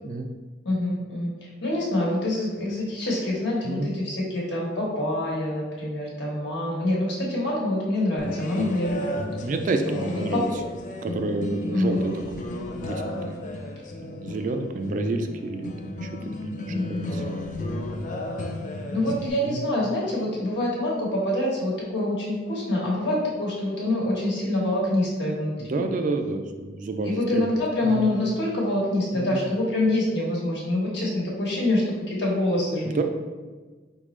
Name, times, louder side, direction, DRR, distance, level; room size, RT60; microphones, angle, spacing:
voice 1, 0.6-9.2 9.8-10.5 11.7-12.0 16.7-17.2 18.9-25.8 27.0-33.0, left 1 dB, 65° left, -4 dB, 1.2 m, -26 dB
sound 1, 8.2-19.3, left 1 dB, 40° left, 0.4 m, -33 dB
voice 2, 9.4-10.5 11.0-12.0 12.3-12.4 12.8-13.3 14.1-16.1 16.4-16.6 16.9-17.2 19.4-19.7 25.6-27.6 27.8-28.1 29.1-29.4 32.9-33.0, right 3 dB, 45° right, 6 dB, 0.3 m, -29 dB
4.0 x 3.6 x 3.1 m, 1.3 s
head